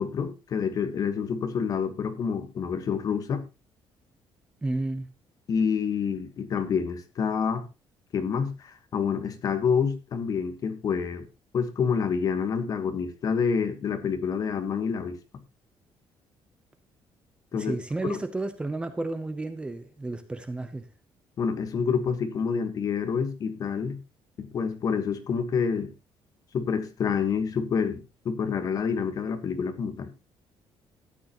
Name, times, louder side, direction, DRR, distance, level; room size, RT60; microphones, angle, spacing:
voice 1, 0.0-3.4 5.5-7.7 8.1-11.2 11.5-15.2 17.5-17.8 18.1-18.2 21.4-24.0 24.4-25.9 26.5-30.1, left 6 dB, 40° left, 1.4 m, -28 dB
voice 2, 4.6-5.1 17.5-20.9, right 2 dB, 10° right, 0.8 m, -32 dB
13.5 x 9.4 x 3.0 m
cardioid pair, 175°, 9 cm